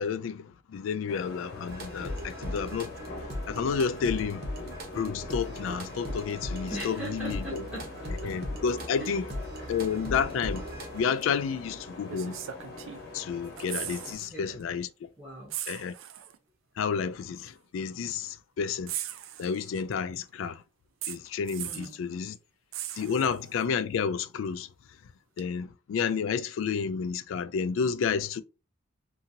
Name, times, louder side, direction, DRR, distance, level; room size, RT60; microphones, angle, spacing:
voice 1, 0.0-2.9 3.5-4.5 4.9-7.6 8.2-9.2 9.7-10.7 10.9-12.4 13.1-15.1 15.7-15.9 16.8-18.9 19.4-20.6 21.1-22.4 23.0-24.7 25.4-28.4, left 6 dB, 80° left, 0.3 m, -30 dB
sound 1, 1.1-14.1, left 2 dB, 55° left, 1.0 m, -43 dB
sound 2, 1.7-11.0, equal, 50° right, 0.8 m, -38 dB
voice 2, 6.6-8.3 9.0-9.2 9.5-9.9 14.1-14.6 15.2-15.6 21.6-21.9, right 1 dB, 5° right, 0.7 m, -41 dB
sound 3, 11.2-11.3 12.1-13.2 13.5-14.3 14.6-14.8 15.5-16.4 17.4-17.5 18.9-19.9 21.0-22.0 22.7-23.6 25.4-25.5, right 11 dB, 80° right, 0.4 m, -38 dB
2.7 x 2.7 x 2.5 m
head